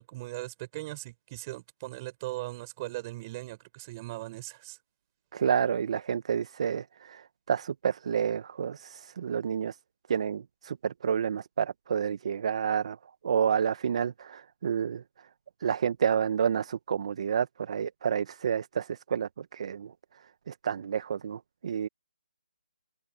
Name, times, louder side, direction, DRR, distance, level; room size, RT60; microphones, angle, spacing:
voice 1, 0.0-4.8, right 19 dB, 20° right, 5.6 m, -39 dB
voice 2, 5.3-7.2 7.5-9.7 10.1-13.0 13.2-15.0 15.6-19.9 20.5-21.9, right 7 dB, 40° right, 1.0 m, -29 dB
open air
figure-of-eight pair, 160°, 5 cm